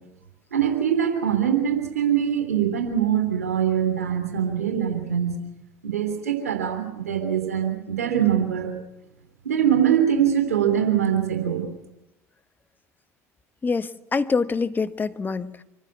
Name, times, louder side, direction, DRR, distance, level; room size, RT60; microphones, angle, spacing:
voice 1, 0.5-5.4 5.8-8.7 9.4-11.7, right 9 dB, 85° right, 6 dB, 3.2 m, -23 dB
voice 2, 13.6-15.6, left 4 dB, 25° left, 11 dB, 1.3 m, -25 dB
25.0 x 14.5 x 8.5 m, 0.94 s
figure-of-eight pair, 65°, 8 cm